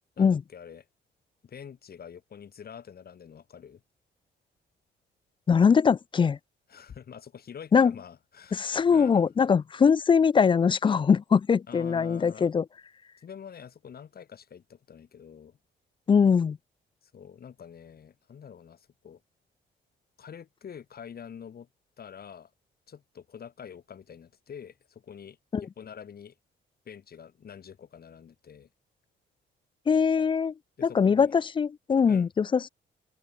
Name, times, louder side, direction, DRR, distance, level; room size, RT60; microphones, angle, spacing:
voice 1, 0.2-0.9 1.4-3.8 6.7-9.3 11.7-12.5 13.2-15.6 17.0-19.2 20.2-21.7 22.0-22.5 22.9-26.3 26.8-28.7 30.8-31.3 32.1-32.3, left 7 dB, 50° left, 3.1 m, -46 dB
voice 2, 5.5-6.4 7.7-7.9 8.5-12.6 16.1-16.6 25.5-25.6 29.9-30.5 30.8-32.7, left 6 dB, 25° left, 0.4 m, -22 dB
cardioid pair, 90°, 20 cm